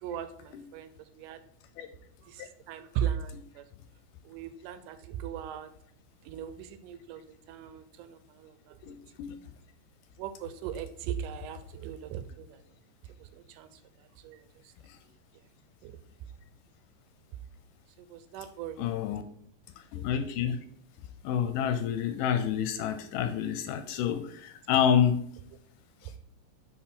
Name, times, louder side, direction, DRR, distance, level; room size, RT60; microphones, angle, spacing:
voice 1, 0.0-0.9 1.2-1.4 2.2-3.6 4.3-5.7 6.2-8.7 10.2-12.6 13.2-13.7 14.2-14.4 15.8-15.9 18.0-18.9 26.0-26.1, right 9 dB, 80° right, 11 dB, 2.0 m, -38 dB
voice 2, 8.9-9.3 18.8-19.2 19.9-20.6 21.2-25.2, left 8 dB, 80° left, 8 dB, 2.0 m, -28 dB
7.3 x 4.2 x 4.3 m, 0.65 s
omnidirectional pair, 3.9 m